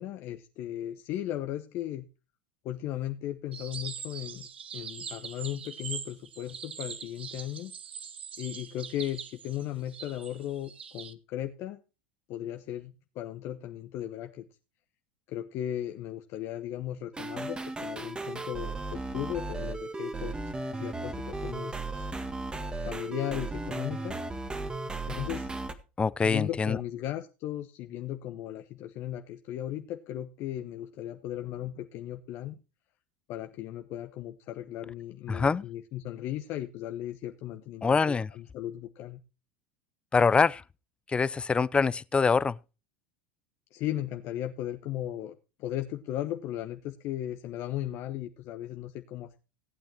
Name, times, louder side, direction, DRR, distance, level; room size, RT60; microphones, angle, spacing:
voice 1, 0.0-2.1 2.6-7.7 8.4-11.8 12.3-14.5 15.3-20.4 20.7-22.1 22.8-24.2 25.1-25.5 26.2-32.6 33.3-39.2 43.7-49.4, left 12 dB, 50° left, 1.1 m, -36 dB
sound 1, 3.5-11.1, right 7 dB, 85° right, 1.0 m, -42 dB
sound 2, 17.1-25.7, right 2 dB, 15° right, 1.7 m, -35 dB
voice 2, 26.0-26.8 35.3-35.6 37.8-38.3 40.1-40.6 41.1-42.6, left 5 dB, 20° left, 0.5 m, -24 dB
17.5 x 9.0 x 2.9 m
hypercardioid pair, 85°, 6 cm